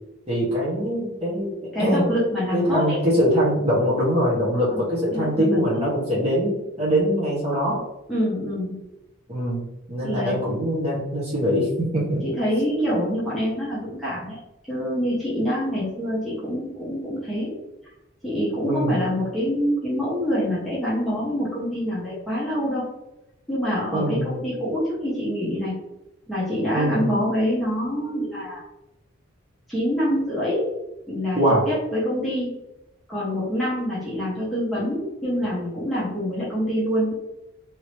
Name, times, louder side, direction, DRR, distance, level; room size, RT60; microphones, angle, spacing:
voice 1, 0.3-1.5 1.8-2.1 2.5-7.8 9.3-12.2 18.6-19.0 23.9-24.4 26.7-27.1 31.3-31.6, equal, 30° right, -7 dB, 1.1 m, -23 dB
voice 2, 1.7-3.0 4.5-4.8 5.1-5.9 8.1-8.7 10.0-10.4 12.2-14.4 14.7-17.5 18.2-22.8 23.5-25.8 26.3-28.6 29.7-30.7 31.1-32.6 33.1-37.1, equal, ahead, -9 dB, 0.9 m, -26 dB
3.0 x 2.7 x 3.1 m, 0.93 s
head